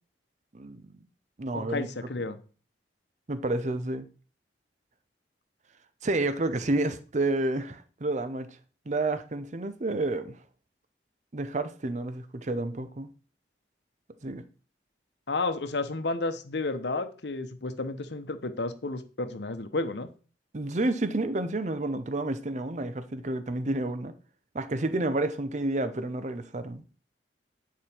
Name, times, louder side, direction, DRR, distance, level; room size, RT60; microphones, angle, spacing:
voice 1, 0.5-0.9 1.4-1.9 3.3-4.1 6.0-8.5 8.9-10.4 11.3-13.1 14.2-14.4 20.5-24.1 24.5-26.8, right 2 dB, 40° right, 0.6 m, -30 dB
voice 2, 1.5-2.4 15.3-20.1, left 3 dB, 75° left, 0.9 m, -32 dB
8.8 x 4.7 x 4.3 m
head